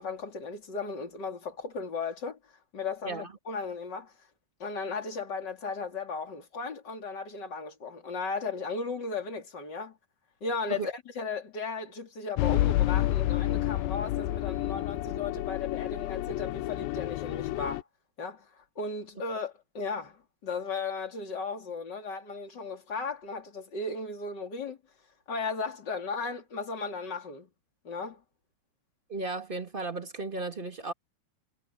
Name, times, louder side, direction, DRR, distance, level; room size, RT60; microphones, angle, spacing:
voice 1, 0.0-2.4 2.7-4.1 4.6-10.0 10.4-17.8 18.2-24.8 25.3-27.5 27.8-28.2, left 4 dB, 30° left, 3.5 m, -36 dB
sound 1, 12.4-17.8, left 15 dB, 80° left, 2.3 m, -29 dB
voice 2, 29.1-30.9, right 3 dB, 35° right, 0.7 m, -35 dB
omnidirectional pair, 4.4 m